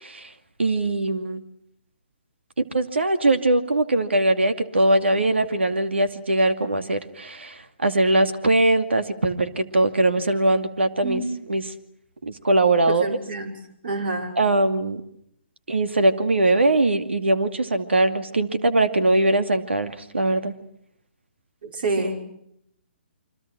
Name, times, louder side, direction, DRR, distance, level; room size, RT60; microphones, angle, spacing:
voice 1, 0.6-1.4 2.7-11.2 11.5-11.7 12.2-13.2 14.4-15.0 15.7-20.5 22.0-22.2, right 2 dB, 90° right, 9 dB, 2.5 m, -21 dB
voice 2, 13.0-13.5 13.8-14.4 21.6-22.2, right 3 dB, 60° right, 5 dB, 5.6 m, -27 dB
28.5 x 25.0 x 6.1 m, 0.72 s
hypercardioid pair, 145°, 6 cm